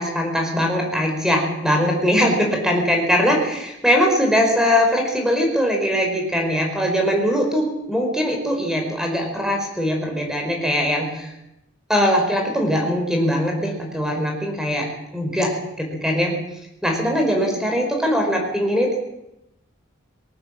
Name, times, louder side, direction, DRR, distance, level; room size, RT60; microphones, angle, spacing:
voice 1, 0.0-11.3 11.9-14.9 15.1-15.5 15.8-16.4 16.8-19.0, equal, 5° right, 2 dB, 4.5 m, -21 dB
19.5 x 18.0 x 7.4 m, 0.87 s
head